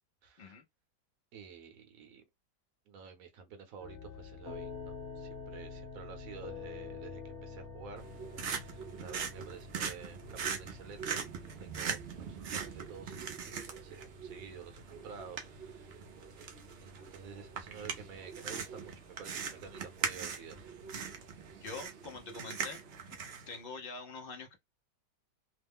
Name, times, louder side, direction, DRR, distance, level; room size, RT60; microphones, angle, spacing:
voice 1, 0.2-0.6 1.3-2.2 2.9-8.0 8.5-11.2 11.6-12.0 12.3-16.0 16.8-20.6, right 6 dB, 60° right, 1.1 m, -50 dB
sound 1, 3.8-21.8, left 4 dB, 35° left, 1.1 m, -49 dB
sound 2, 8.0-23.6, right 6 dB, 80° right, 0.5 m, -41 dB
voice 2, 21.6-23.2 23.5-24.6, left 4 dB, 85° left, 0.5 m, -45 dB
3.0 x 2.0 x 3.5 m
omnidirectional pair, 1.8 m